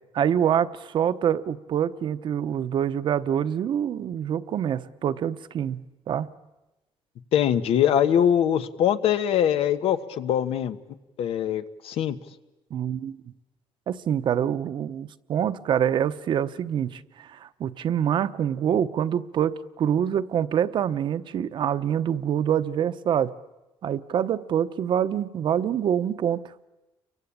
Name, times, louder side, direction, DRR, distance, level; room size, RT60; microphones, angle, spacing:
voice 1, 0.1-6.3 12.7-13.2 13.9-23.3 23.8-26.7, right 9 dB, 55° right, 12 dB, 0.9 m, -26 dB
voice 2, 7.3-10.8 11.2-12.1, left 9 dB, 85° left, 10 dB, 1.3 m, -22 dB
29.0 x 23.5 x 8.6 m, 1.0 s
cardioid pair, 155°, 10 cm